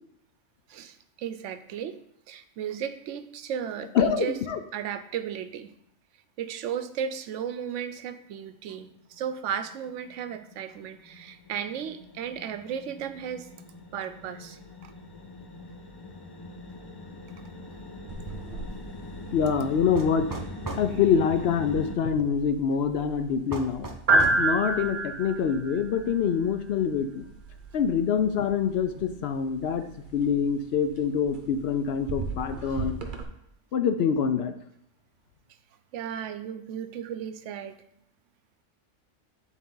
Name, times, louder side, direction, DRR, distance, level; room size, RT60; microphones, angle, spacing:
voice 1, 0.7-4.4 4.7-5.7 6.4-13.5 13.9-14.9 35.9-37.8, right 8 dB, 80° right, 11 dB, 0.9 m, -35 dB
voice 2, 4.0-4.6 19.3-20.3 20.8-23.9 24.4-27.2 27.7-29.9 30.1-32.9 33.7-34.5, left 7 dB, 65° left, 8 dB, 0.7 m, -25 dB
sound 1, 8.7-8.8 9.1-22.0, left 2 dB, 35° left, 0.4 m, -42 dB
sound 2, 18.1-33.2, right 2 dB, 45° right, 0.9 m, -32 dB
sound 3, 20.0-20.9 23.5-24.4, right 3 dB, 20° right, 0.6 m, -36 dB
9.3 x 4.0 x 3.8 m, 0.71 s
omnidirectional pair, 1.2 m